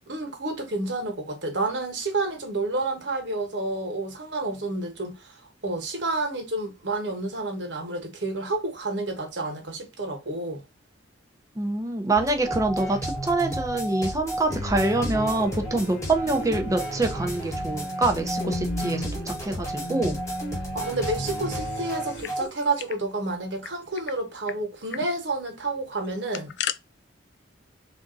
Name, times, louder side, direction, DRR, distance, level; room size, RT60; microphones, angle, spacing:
voice 1, 0.1-5.3 5.6-10.6 20.7-26.5, right 2 dB, 65° right, 1.3 m, -30 dB
voice 2, 11.6-20.2, right 2 dB, 15° right, 0.6 m, -25 dB
sound 1, 12.2-22.5, right 1 dB, 15° left, 1.2 m, -32 dB
sound 2, 14.5-22.2, left 1 dB, 80° left, 1.0 m, -36 dB
sound 3, 22.0-23.0 23.3-23.4 23.6-24.2 24.5-24.6 24.9-25.1 26.0-26.8, left 11 dB, 60° left, 0.3 m, -35 dB
3.5 x 2.6 x 3.8 m
head